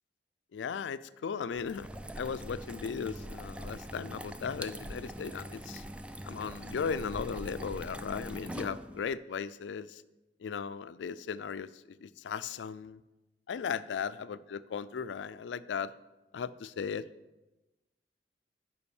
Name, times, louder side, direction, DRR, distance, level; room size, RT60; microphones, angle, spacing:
voice 1, 0.5-1.9 2.2-5.8 6.2-10.0 10.4-13.0 13.5-15.9 16.3-17.1, left 6 dB, 90° left, 15 dB, 0.4 m, -37 dB
sound 1, 1.5-9.1, right 1 dB, 5° right, 0.3 m, -43 dB
6.9 x 5.2 x 7.0 m, 1.0 s
head